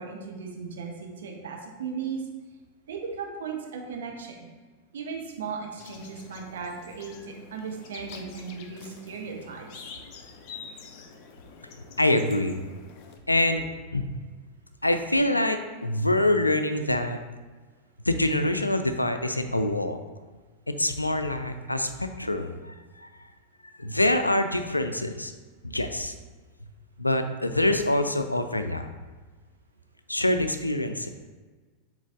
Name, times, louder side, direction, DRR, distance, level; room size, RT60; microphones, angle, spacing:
voice 1, 0.0-2.2 2.9-4.3 4.9-9.7, right 5 dB, 60° right, 1 dB, 1.0 m, -36 dB
sound 1, 5.8-13.2, left 5 dB, 45° left, 0.6 m, -47 dB
voice 2, 12.0-12.6 13.3-13.6 13.9-14.1 14.8-17.2 18.1-20.0 20.7-23.1 23.8-25.3 25.6-26.1 27.0-28.9 30.1-31.1, left 1 dB, 85° left, 8 dB, 0.4 m, -25 dB
7.3 x 3.9 x 3.7 m, 1.3 s
figure-of-eight pair, 90°, 0 cm